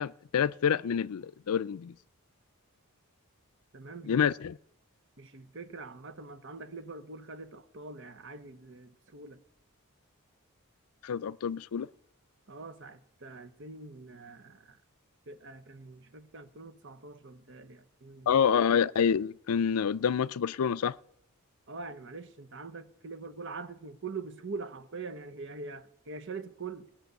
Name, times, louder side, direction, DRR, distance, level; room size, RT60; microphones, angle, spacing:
voice 1, 0.0-1.9 4.0-4.6 11.0-11.9 18.3-21.0, left 7 dB, 80° left, 0.4 m, -27 dB
voice 2, 3.7-4.3 5.2-9.4 12.5-14.8 15.3-18.3 21.7-26.9, right 4 dB, 55° right, 1.0 m, -43 dB
18.5 x 6.1 x 8.1 m
head